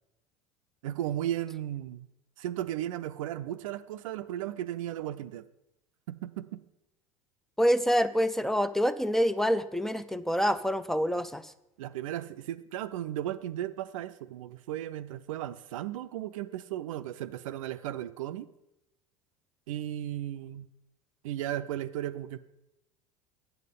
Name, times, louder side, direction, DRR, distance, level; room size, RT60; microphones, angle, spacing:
voice 1, 0.8-2.1 2.4-5.5 6.1-6.6 11.8-18.5 19.7-20.7 21.2-22.4, right 12 dB, 70° right, 11 dB, 0.5 m, -35 dB
voice 2, 7.6-11.5, equal, ahead, 14 dB, 0.5 m, -26 dB
9.2 x 7.8 x 5.4 m, 0.87 s
hypercardioid pair, 75°, 18 cm